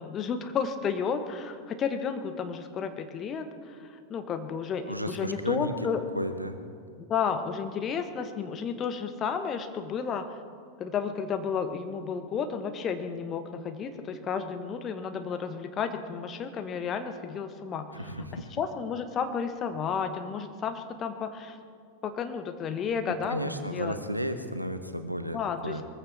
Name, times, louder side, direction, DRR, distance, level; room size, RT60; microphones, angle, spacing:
voice 1, 0.0-6.0 7.0-10.4 10.8-21.6 22.0-24.0 25.3-25.8, left 6 dB, 30° left, 8 dB, 1.3 m, -32 dB
voice 2, 4.9-5.7 6.1-6.6 17.9-18.4 23.3-25.4 25.6-25.8, equal, 90° right, 9 dB, 1.0 m, -33 dB
22.0 x 15.0 x 4.2 m, 2.2 s
figure-of-eight pair, 90°, 0 cm